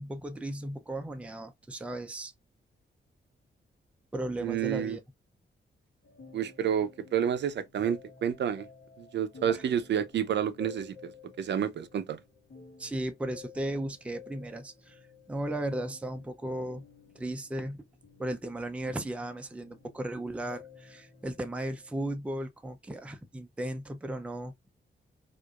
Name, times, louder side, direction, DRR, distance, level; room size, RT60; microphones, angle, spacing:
voice 1, 0.0-2.3 4.1-5.0 12.8-15.0 15.3-16.8 17.1-17.8 18.2-24.5, right 1 dB, 5° right, 0.4 m, -36 dB
voice 2, 4.4-5.0 6.3-8.7 9.0-12.2, right 9 dB, 65° right, 0.5 m, -30 dB
sound 1, 6.0-22.1, left 5 dB, 65° left, 1.2 m, -53 dB
4.6 x 2.5 x 2.3 m
wide cardioid pair, 155°, 20 cm